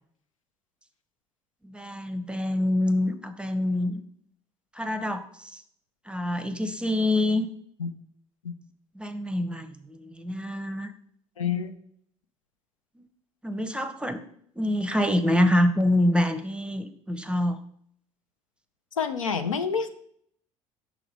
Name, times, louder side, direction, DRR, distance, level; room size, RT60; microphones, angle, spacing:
voice 1, 1.6-4.0 4.7-5.6 6.1-7.5 8.9-10.9 13.4-14.2 14.6-17.6, left 1 dB, 5° right, 10 dB, 0.6 m, -26 dB
voice 2, 11.4-11.7 19.0-19.9, left 6 dB, 85° left, 8 dB, 0.4 m, -27 dB
6.1 x 3.8 x 4.6 m, 0.66 s
figure-of-eight pair, 60°, 16 cm